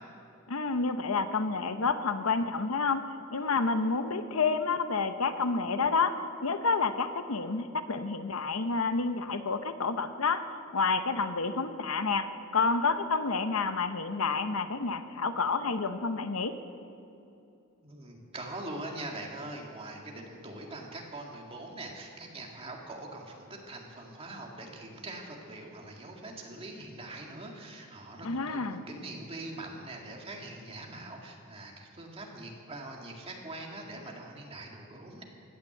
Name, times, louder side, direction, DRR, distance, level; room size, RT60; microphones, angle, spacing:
voice 1, 0.5-3.0 3.3-6.1 6.4-10.4 10.7-12.3 12.5-16.6 28.2-28.8, left 4 dB, 85° left, 10 dB, 0.8 m, -29 dB
voice 2, 17.8-35.2, right 2 dB, 25° right, 0 dB, 2.0 m, -43 dB
15.5 x 9.8 x 8.0 m, 2.7 s
head